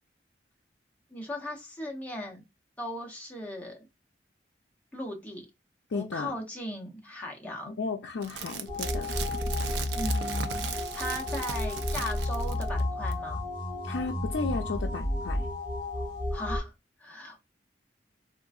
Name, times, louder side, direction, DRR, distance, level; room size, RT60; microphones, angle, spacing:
voice 1, 1.1-2.4 2.8-3.8 4.9-5.5 5.9-7.8 9.9-13.4 16.3-16.7 17.0-17.5, left 1 dB, 10° left, 0.7 m, -37 dB
voice 2, 5.9-6.3 7.8-9.2 13.8-15.5, left 4 dB, 90° left, 0.4 m, -34 dB
sound 1, 8.2-12.8 13.1-13.2, right 7 dB, 70° right, 0.4 m, -38 dB
sound 2, 8.7-16.6, left 1 dB, 30° left, 1.4 m, -31 dB
3.6 x 2.5 x 2.3 m
head